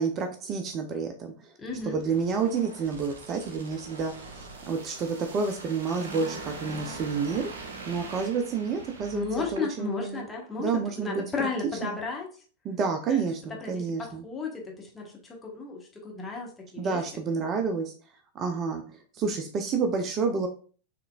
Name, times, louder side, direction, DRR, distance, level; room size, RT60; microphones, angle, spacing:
voice 1, 0.0-1.5 1.8-7.5 7.9-10.2 10.6-11.2 11.8-11.9 12.6-14.2 16.8-17.9 18.3-18.8 19.1-20.5, right 5 dB, 30° right, 5 dB, 0.5 m, -29 dB
voice 2, 1.6-2.0 9.1-12.3 13.1-17.0, left 4 dB, 15° left, -1 dB, 1.2 m, -34 dB
sound 1, 1.7-10.0 10.4-10.5, right 3 dB, 65° right, 0.8 m, -43 dB
5.7 x 3.2 x 2.4 m, 0.40 s
figure-of-eight pair, 90°, 0 cm